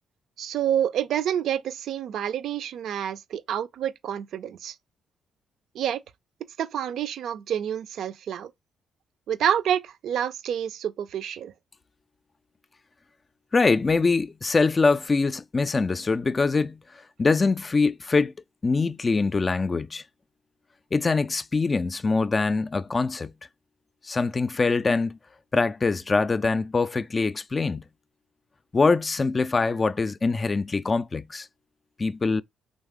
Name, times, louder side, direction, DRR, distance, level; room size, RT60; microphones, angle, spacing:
voice 1, 0.4-4.7 5.7-6.0 6.6-8.5 9.3-11.5, right 9 dB, 65° right, 0.5 m, -28 dB
voice 2, 13.5-16.8 17.2-18.3 18.6-20.0 20.9-23.3 24.0-25.2 25.5-27.8 28.7-31.5 32.0-32.4, left 4 dB, 35° left, 0.4 m, -23 dB
3.9 x 3.2 x 3.6 m
hypercardioid pair, 45°, 0 cm